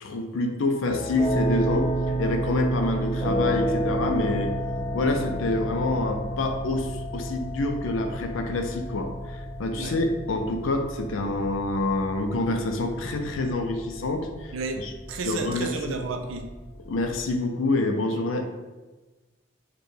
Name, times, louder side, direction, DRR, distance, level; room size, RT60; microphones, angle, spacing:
voice 1, 0.0-4.5 4.9-14.9 15.3-16.0 16.9-18.5, left 2 dB, 80° left, 0.5 m, -27 dB
sound 1, 0.8-17.3, right 1 dB, 10° left, 1.3 m, -31 dB
voice 2, 14.5-16.5, right 3 dB, 80° right, 0.5 m, -32 dB
4.9 x 2.2 x 3.2 m
head